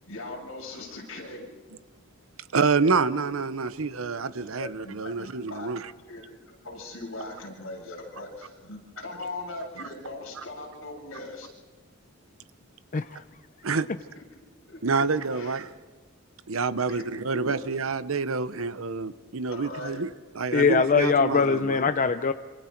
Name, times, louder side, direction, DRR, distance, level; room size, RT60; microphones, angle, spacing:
voice 1, 0.0-1.5 4.2-5.7 6.1-11.5 14.4-14.8 15.3-15.6 16.8-17.5 19.5-20.0, left 2 dB, 75° left, -2 dB, 7.5 m, -40 dB
voice 2, 2.5-5.9 13.6-13.9 14.8-15.7 16.5-20.1 20.4-21.8, right 4 dB, 85° right, 14 dB, 0.9 m, -27 dB
voice 3, 12.9-13.2 20.5-22.3, left 5 dB, 40° left, 9 dB, 0.6 m, -22 dB
26.5 x 26.0 x 4.5 m, 1.4 s
head